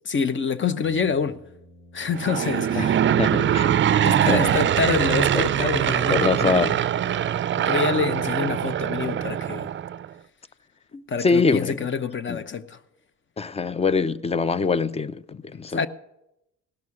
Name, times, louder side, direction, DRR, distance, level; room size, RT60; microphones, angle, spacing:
voice 1, 0.1-1.4 1.9-3.1 4.0-6.7 7.7-9.7 10.9-12.8 15.7-15.9, left 6 dB, 40° left, 0.8 m, -27 dB
Aircraft / Engine, 2.1-10.1, right 10 dB, 40° right, 0.4 m, -22 dB
voice 2, 2.7-3.7 4.2-4.4 5.3-5.5 6.1-6.7 11.2-11.8 12.3-12.4 13.4-15.9, left 4 dB, 20° left, 0.5 m, -24 dB
Brass instrument, 9.8-10.2, left 1 dB, 65° left, 6.8 m, -52 dB
17.0 x 6.2 x 8.5 m
cardioid pair, 90°, 30 cm